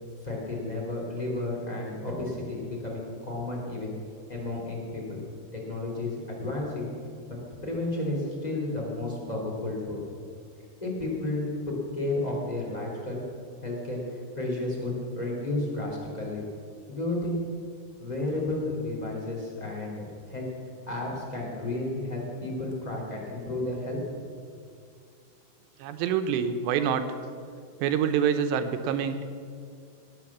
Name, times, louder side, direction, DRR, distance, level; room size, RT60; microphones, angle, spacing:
voice 1, 0.2-3.9 4.3-5.2 5.5-6.9 7.3-7.4 7.6-10.0 10.8-11.5 11.9-13.2 13.6-16.4 16.9-17.4 18.0-20.5 20.9-24.0 24.2-24.3, left 2 dB, 10° left, -3 dB, 2.4 m, -32 dB
voice 2, 25.8-27.2 27.8-29.2, right 8 dB, 80° right, 8 dB, 2.9 m, -26 dB
18.5 x 7.4 x 7.3 m, 2.2 s
omnidirectional pair, 5.0 m